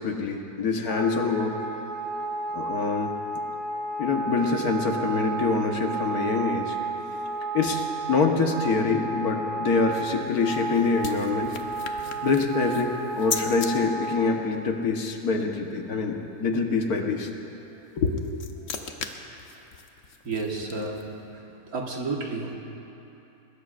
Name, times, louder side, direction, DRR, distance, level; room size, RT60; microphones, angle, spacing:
voice 1, 0.0-1.5 2.5-3.1 4.0-6.8 7.5-11.5 11.9-17.3 18.0-18.2, left 4 dB, 90° left, 2 dB, 1.7 m, -25 dB
Wind instrument woodwind instrument, 0.9-14.4, right 3 dB, 20° left, 4.2 m, -32 dB
sound 1, 10.1-13.7 17.9-21.2, left 6 dB, 60° left, 1.2 m, -38 dB
voice 2, 20.3-21.1 21.7-22.5, right 3 dB, 75° right, 0 dB, 2.0 m, -31 dB
22.0 x 21.0 x 2.5 m, 2.9 s
omnidirectional pair, 1.6 m